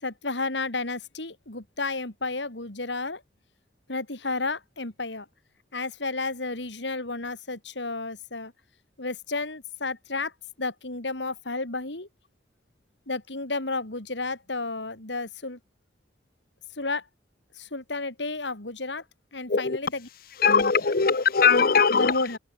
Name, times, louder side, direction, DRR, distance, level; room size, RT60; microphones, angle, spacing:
voice 1, 0.0-3.2 3.9-5.3 5.7-8.5 9.0-10.3 10.6-12.1 13.1-15.6 16.8-17.0 17.6-19.0 19.3-20.1 21.9-22.4, left 3 dB, 85° left, 3.7 m, -32 dB
voice 2, 20.4-22.4, left 5 dB, 55° left, 0.9 m, -21 dB
head